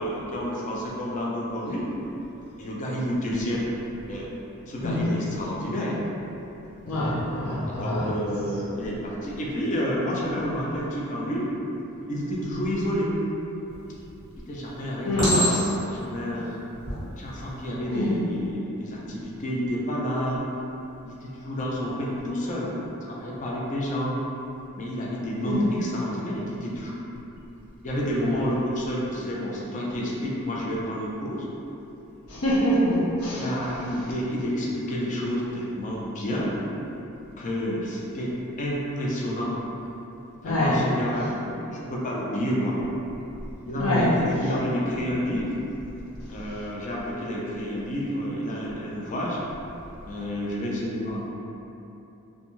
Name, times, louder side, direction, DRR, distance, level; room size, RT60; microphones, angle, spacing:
voice 1, 0.0-1.8 2.6-3.6 4.1-4.3 4.7-6.0 7.5-11.5 12.1-13.2 14.5-16.5 17.2-20.4 21.0-22.7 23.0-24.2 24.8-27.0 27.8-31.5 33.3-36.5 37.4-39.5 40.4-42.8 43.6-45.5 46.3-49.4 50.1-51.3, equal, 35° left, -4 dB, 0.4 m, -29 dB
voice 2, 6.9-8.0 15.0-15.3 17.9-18.1 25.4-25.7 32.3-33.4 40.4-40.8 43.8-44.1, equal, 85° left, -6 dB, 0.7 m, -24 dB
Chink clink, 13.7-14.2 15.2-16.0 16.7-17.0, equal, 20° left, 1.2 m, -25 dB
2.5 x 2.2 x 3.0 m, 3.0 s
head